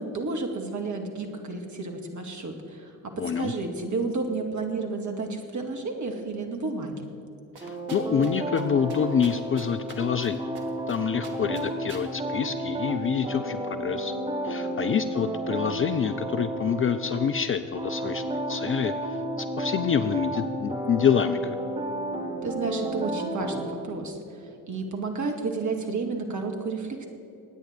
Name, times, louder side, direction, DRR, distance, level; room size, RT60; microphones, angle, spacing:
voice 1, 0.0-2.9 3.4-7.1 22.4-24.2 24.7-27.1, right 3 dB, 40° right, 3 dB, 2.2 m, -31 dB
voice 2, 3.2-3.5 7.6-10.4 10.9-14.1 14.4-21.6, left 7 dB, 30° left, 11 dB, 0.5 m, -27 dB
sound 1, 7.6-17.3 17.7-23.6, right 1 dB, 15° right, 2.8 m, -32 dB
sound 2, 7.6-8.3 8.6-8.7 8.9-10.3 10.5-11.0 11.2-12.0, right 5 dB, 55° right, 1.9 m, -44 dB
22.0 x 9.3 x 4.5 m, 2.9 s
figure-of-eight pair, 45°, 46 cm